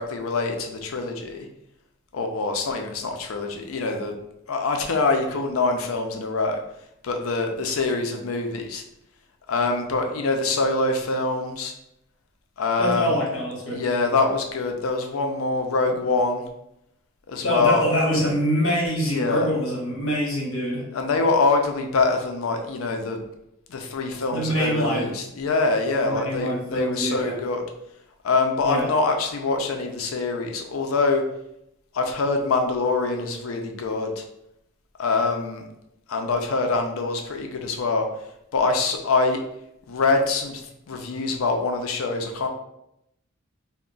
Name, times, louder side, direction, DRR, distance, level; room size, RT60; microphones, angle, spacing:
voice 1, 0.0-1.5 2.1-4.2 4.5-6.6 7.0-8.8 9.5-11.7 12.6-13.1 13.7-16.4 17.3-17.8 19.1-19.5 20.9-23.2 23.7-27.6 28.2-31.2 31.9-34.2 35.0-35.6 36.1-38.1 38.5-39.4 39.9-40.6 40.9-42.5, left 3 dB, 90° left, 4 dB, 0.5 m, -24 dB
voice 2, 12.8-13.8 17.4-20.8 24.3-25.1 26.0-27.4 28.6-28.9, equal, 70° left, -3 dB, 0.9 m, -25 dB
2.3 x 2.1 x 3.8 m, 0.81 s
head